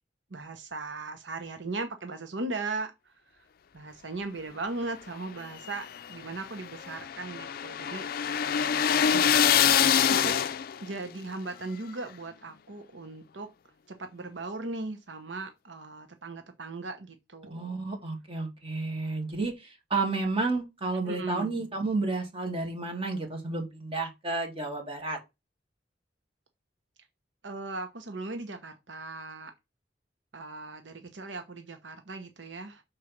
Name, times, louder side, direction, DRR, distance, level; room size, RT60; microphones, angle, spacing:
voice 1, 0.3-3.1 3.7-8.1 9.1-9.3 10.1-10.4 10.8-13.5 13.9-17.8 21.0-21.5 27.4-29.5 30.3-32.8, right 3 dB, 85° right, 1.0 m, -38 dB
sound 1, 5.4-10.9, left 8 dB, 55° left, 0.4 m, -25 dB
voice 2, 17.5-25.2, right 3 dB, 30° right, 2.5 m, -31 dB
6.4 x 4.5 x 5.9 m
head